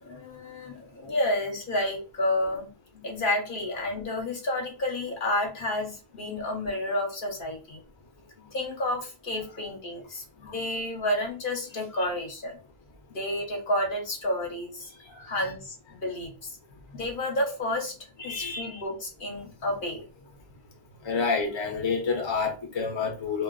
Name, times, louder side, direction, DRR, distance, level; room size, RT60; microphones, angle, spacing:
voice 1, 0.0-2.7 2.9-7.8 8.4-12.6 13.1-14.9 15.3-16.3 16.9-17.9 18.2-20.0, left 1 dB, 60° left, 0.9 m, -30 dB
voice 2, 15.2-15.5 18.2-18.8 21.0-23.4, left 5 dB, 30° left, 0.6 m, -29 dB
2.4 x 2.2 x 3.7 m
omnidirectional pair, 1.0 m